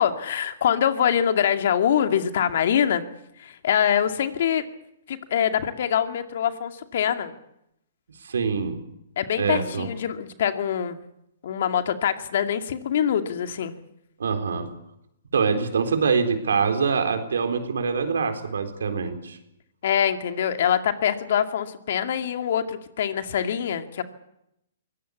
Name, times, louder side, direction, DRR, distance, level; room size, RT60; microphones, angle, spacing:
voice 1, 0.0-3.0 3.4-4.6 5.1-7.3 9.2-11.0 11.4-13.7 19.8-24.0, left 9 dB, 65° left, 7 dB, 2.3 m, -24 dB
voice 2, 8.2-8.8 9.4-9.9 14.2-14.7 15.3-19.4, right 5 dB, 80° right, 6 dB, 4.0 m, -24 dB
23.0 x 18.0 x 8.4 m, 0.81 s
hypercardioid pair, 135°, 0 cm